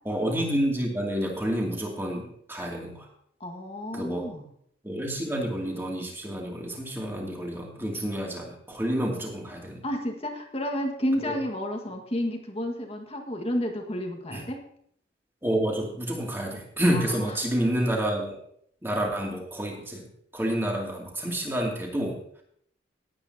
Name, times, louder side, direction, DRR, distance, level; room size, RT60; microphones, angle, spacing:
voice 1, 0.0-3.1 3.9-4.3 4.8-9.8 11.2-11.3 14.3-14.4 15.4-18.4 18.8-20.1 20.3-22.4, right 1 dB, 10° right, -1 dB, 2.5 m, -29 dB
voice 2, 3.4-4.4 9.8-14.6 16.9-17.3, equal, 30° left, 3 dB, 1.7 m, -31 dB
18.5 x 8.8 x 2.8 m, 0.67 s
head